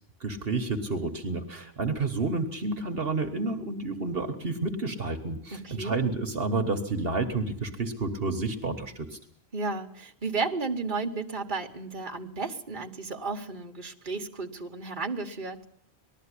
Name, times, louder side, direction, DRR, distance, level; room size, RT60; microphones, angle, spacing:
voice 1, 0.2-9.2, right 3 dB, 65° right, 5 dB, 1.7 m, -30 dB
voice 2, 5.5-6.0 9.5-15.6, right 4 dB, 50° right, 4 dB, 1.7 m, -33 dB
19.5 x 13.5 x 10.0 m, 0.68 s
omnidirectional pair, 1.1 m